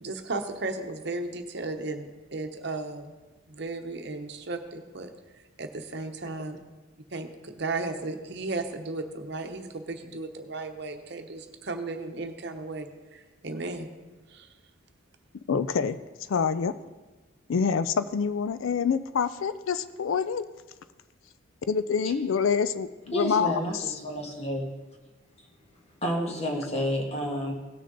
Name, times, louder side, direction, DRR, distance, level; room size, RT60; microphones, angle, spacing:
voice 1, 0.0-3.1 3.5-5.1 5.6-6.6 7.1-13.9 14.3-14.5, right 3 dB, 55° right, 6 dB, 0.9 m, -35 dB
voice 2, 15.5-16.0 16.3-16.7 17.5-20.5 21.7-23.6, left 6 dB, 75° left, 13 dB, 0.4 m, -26 dB
voice 3, 23.1-24.7 26.0-27.5, equal, 30° left, 1 dB, 1.7 m, -30 dB
17.5 x 6.5 x 3.9 m, 1.2 s
head